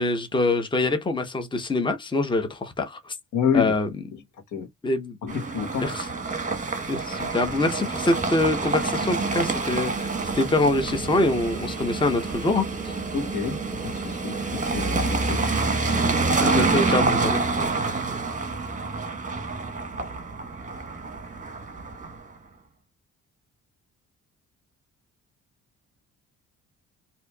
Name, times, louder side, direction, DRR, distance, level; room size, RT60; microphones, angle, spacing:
voice 1, 0.0-3.1 3.5-3.9 4.8-5.2 5.8-6.1 6.9-12.9 16.1-17.4, left 2 dB, 15° left, 0.9 m, -25 dB
voice 2, 3.3-3.7 4.5-4.7 5.2-5.9 13.1-15.4 16.4-16.6, left 7 dB, 75° left, 1.2 m, -28 dB
sound 1, 5.3-22.3, right 3 dB, 25° right, 1.1 m, -27 dB
4.2 x 2.8 x 2.3 m
cardioid pair, 90°, 30 cm